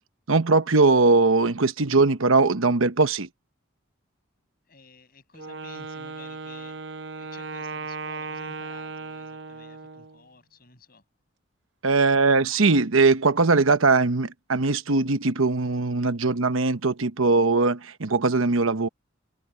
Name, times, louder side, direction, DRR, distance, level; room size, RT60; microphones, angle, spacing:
voice 1, 0.3-3.3 11.8-18.9, right 3 dB, 80° right, 1.1 m, -20 dB
voice 2, 4.7-6.8 7.2-11.0, left 4 dB, 45° left, 7.5 m, -52 dB
Wind instrument woodwind instrument, 5.3-10.2, right 4 dB, 55° right, 0.8 m, -37 dB
head